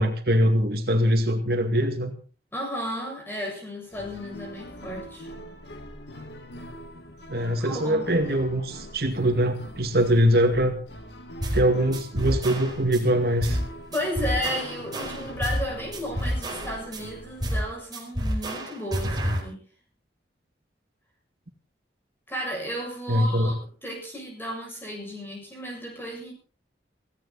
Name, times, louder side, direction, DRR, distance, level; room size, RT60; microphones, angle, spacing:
voice 1, 0.0-2.1 7.3-10.7 11.5-13.6 23.1-23.5, equal, 60° right, 4 dB, 2.2 m, -22 dB
voice 2, 2.5-5.3 7.6-8.0 13.9-19.6 22.3-26.3, equal, 10° left, 0 dB, 7.2 m, -33 dB
sound 1, 3.9-17.8, equal, 75° left, 2.3 m, -43 dB
sound 2, 11.4-11.7 11.9-13.0 13.4-13.7 13.9-15.7 15.9-17.0 17.4-17.7 17.9-19.4, equal, 25° right, 4.8 m, -28 dB
17.5 x 17.0 x 4.2 m, 0.39 s
head